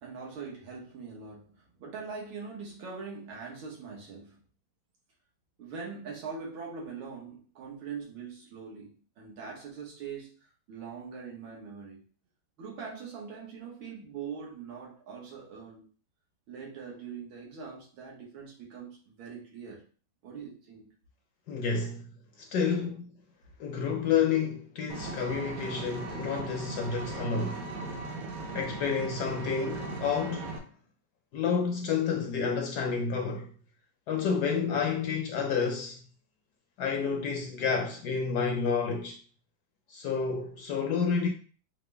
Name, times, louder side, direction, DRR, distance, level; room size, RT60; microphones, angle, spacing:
voice 1, 0.0-4.4 5.6-12.0 12.6-15.9 16.5-19.8 20.2-20.9 21.7-21.8, right 5 dB, 85° right, 2.0 m, -42 dB
voice 2, 21.5-22.1 22.4-23.1 23.6-27.6 28.5-30.6 31.3-33.5 34.1-36.0 36.8-39.2 39.9-41.3, left 6 dB, 70° left, 1.0 m, -29 dB
Vehicle, 24.9-30.6, right 3 dB, 60° right, 1.0 m, -38 dB
5.7 x 2.1 x 3.3 m
omnidirectional pair, 2.2 m